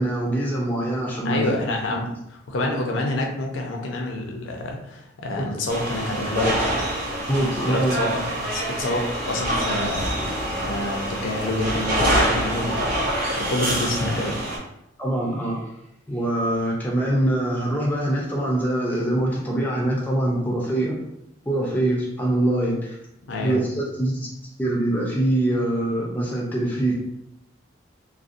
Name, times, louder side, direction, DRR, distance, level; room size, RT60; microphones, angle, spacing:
voice 1, 0.0-1.5 1.9-2.0 5.4-5.5 7.3-8.0 15.0-15.6 16.1-21.0 21.5-23.0 23.4-24.3 24.6-26.9, right 1 dB, 10° left, -4 dB, 0.4 m, -23 dB
voice 2, 1.2-6.8 7.7-14.4 23.3-23.6, left 1 dB, 80° left, 1 dB, 0.5 m, -28 dB
sound 1, 5.7-14.6, right 1 dB, 45° right, 0.9 m, -26 dB
2.5 x 2.0 x 2.5 m, 0.80 s
head